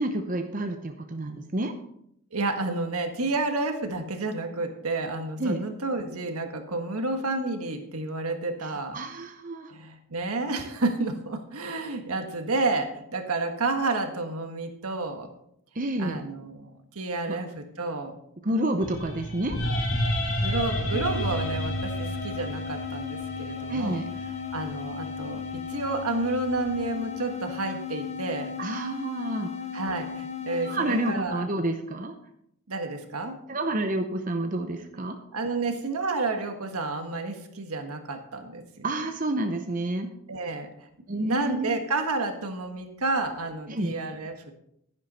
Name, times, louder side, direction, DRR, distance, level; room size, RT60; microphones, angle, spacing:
voice 1, 0.0-1.7 5.4-5.6 8.9-9.7 15.8-16.2 18.4-19.6 23.7-24.1 28.6-29.5 30.6-32.1 33.5-35.2 38.8-40.1 41.1-41.8 43.7-43.9, right 1 dB, 35° right, 6 dB, 0.7 m, -29 dB
voice 2, 2.3-9.0 9.7-15.3 16.0-18.1 20.3-28.5 29.7-31.5 32.7-33.3 35.3-38.9 40.3-44.5, right 3 dB, 80° right, 5 dB, 1.5 m, -30 dB
sound 1, 18.8-27.0, equal, 60° left, 2.8 m, -32 dB
sound 2, 20.9-31.3, left 7 dB, 30° left, 0.7 m, -36 dB
11.0 x 10.5 x 4.3 m, 0.74 s
head